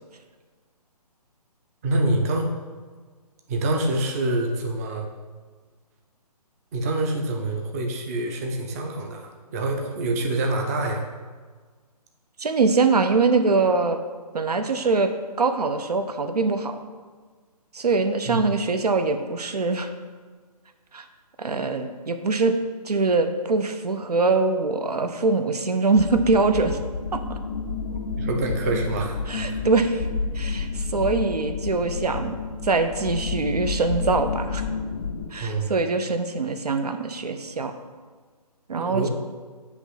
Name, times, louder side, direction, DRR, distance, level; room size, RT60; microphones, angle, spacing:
voice 1, 1.8-2.5 3.5-5.1 6.7-11.1 18.3-18.4 27.9-29.2 29.5-29.6 35.4-35.7 38.8-39.1, right 2 dB, 25° right, 2 dB, 0.6 m, -26 dB
voice 2, 12.4-14.0 14.3-15.1 15.4-16.8 17.7-19.9 20.9-21.1 21.4-22.5 22.8-26.8 27.1-27.4 29.3-30.0 30.3-32.4 32.6-34.6 35.3-37.7 38.7-39.1, right 3 dB, 75° right, 8 dB, 0.7 m, -23 dB
sound 1, 26.0-35.3, left 4 dB, 20° left, 0.3 m, -30 dB
7.9 x 3.0 x 5.7 m, 1.5 s
figure-of-eight pair, 140°, 20 cm